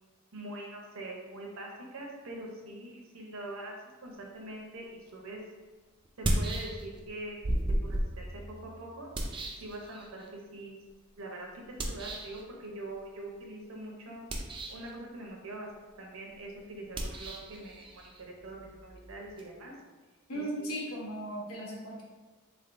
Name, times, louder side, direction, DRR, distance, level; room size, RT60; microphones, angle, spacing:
voice 1, 0.3-3.8 4.0-5.4 6.2-7.5 7.8-8.3 8.6-9.1 9.6-10.8 11.2-14.2 14.7-15.7 16.0-19.7 20.3-20.8, right 1 dB, 70° right, -1 dB, 0.8 m, -43 dB
sound 1, 5.1-5.2 6.0-7.1 7.4-10.3 11.8-12.4 14.2-14.9 16.9-19.5, right 1 dB, 25° right, 0.3 m, -34 dB
voice 2, 20.3-22.0, right 1 dB, 90° left, -4 dB, 0.9 m, -37 dB
3.5 x 3.3 x 2.6 m, 1.3 s
head